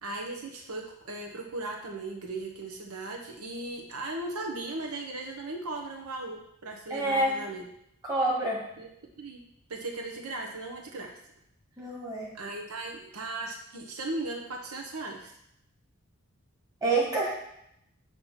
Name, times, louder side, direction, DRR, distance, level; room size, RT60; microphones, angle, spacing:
voice 1, 0.0-7.7 8.8-8.9 9.2-9.4 9.7-11.1 12.3-15.3, right 2 dB, 85° right, 1 dB, 0.9 m, -37 dB
voice 2, 6.9-7.3 8.0-8.6 11.8-12.3 16.8-17.3, right 2 dB, 15° right, -4 dB, 1.7 m, -27 dB
7.2 x 3.0 x 5.7 m, 0.77 s
head